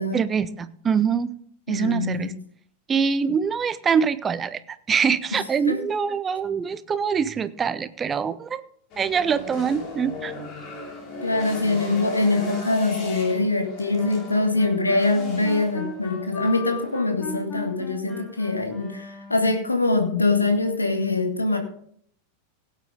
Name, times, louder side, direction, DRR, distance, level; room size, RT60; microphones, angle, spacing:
voice 1, 0.1-1.3 1.7-2.3 2.9-4.6 4.9-8.6 9.0-10.3, right 6 dB, 20° right, 15 dB, 0.7 m, -24 dB
voice 2, 1.7-2.4 5.7-5.8 11.2-21.6, left 2 dB, 80° left, 5 dB, 1.9 m, -23 dB
sound 1, 8.9-17.0, left 3 dB, 40° left, 4.9 m, -36 dB
sound 2, 13.9-19.6, left 3 dB, 20° left, 3.3 m, -39 dB
17.5 x 9.1 x 3.7 m, 0.62 s
figure-of-eight pair, 90°, 0 cm